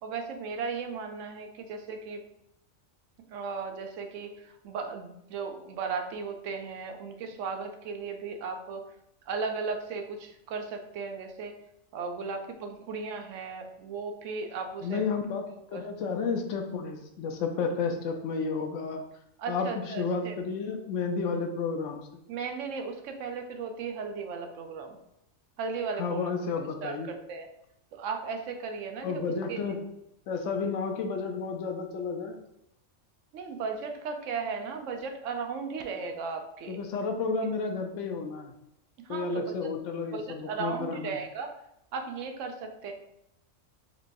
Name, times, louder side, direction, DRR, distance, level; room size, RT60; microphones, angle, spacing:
voice 1, 0.0-2.2 3.3-8.8 9.3-11.6 11.9-15.0 15.7-15.8 19.4-20.3 22.3-25.0 25.6-26.3 26.8-27.5 27.9-29.6 33.3-36.8 39.0-39.6 40.1-41.5 41.9-42.9, right 5 dB, 75° right, 5 dB, 0.9 m, -36 dB
voice 2, 14.8-15.5 15.7-19.0 19.5-22.1 26.0-27.1 29.0-29.8 30.3-32.4 36.7-38.5 39.1-41.2, left 4 dB, 75° left, 4 dB, 0.9 m, -31 dB
4.3 x 2.9 x 2.6 m, 0.81 s
omnidirectional pair, 1.3 m